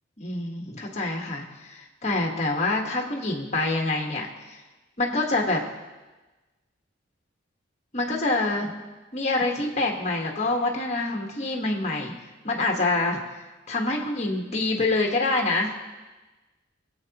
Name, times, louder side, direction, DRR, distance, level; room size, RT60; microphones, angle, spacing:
voice 1, 0.2-4.6 5.0-5.6 7.9-8.7 9.1-12.1 12.4-13.2 13.7-15.7, left 2 dB, 35° left, 0 dB, 1.3 m, -26 dB
22.5 x 8.2 x 2.9 m, 1.2 s
head